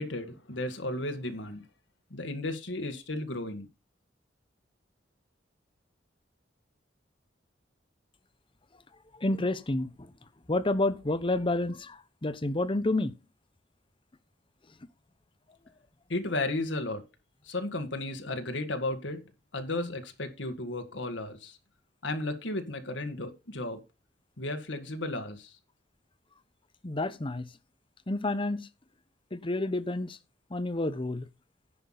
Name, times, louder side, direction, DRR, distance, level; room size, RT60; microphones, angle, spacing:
voice 1, 0.0-1.6 2.1-3.7 16.1-17.0 17.5-19.2 19.5-21.6 22.0-23.8 24.4-25.6, left 2 dB, 80° left, 1.9 m, -34 dB
voice 2, 9.2-9.9 10.5-13.1 26.8-27.5 28.1-28.7 29.3-30.2 30.5-31.3, left 2 dB, 30° left, 0.8 m, -29 dB
10.5 x 5.9 x 5.8 m
head